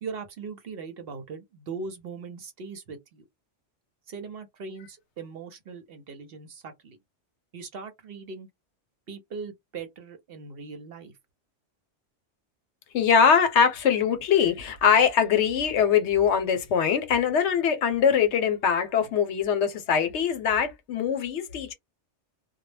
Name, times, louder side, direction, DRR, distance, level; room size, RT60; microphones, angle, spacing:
voice 1, 0.0-3.2 4.1-7.0 7.5-8.5 9.1-11.1, right 4 dB, 60° right, 0.8 m, -40 dB
voice 2, 12.9-21.7, left 7 dB, 75° left, 0.9 m, -22 dB
2.2 x 2.0 x 3.1 m
omnidirectional pair, 1.2 m